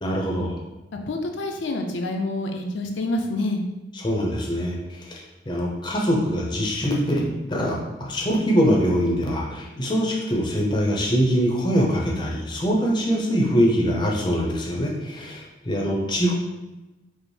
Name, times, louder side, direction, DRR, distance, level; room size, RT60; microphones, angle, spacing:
voice 1, 0.0-0.5 3.9-5.2 5.5-16.4, equal, 25° left, -1 dB, 0.6 m, -23 dB
voice 2, 1.1-3.6, left 2 dB, 70° left, 3 dB, 0.5 m, -27 dB
5.0 x 2.0 x 3.1 m, 1.1 s
head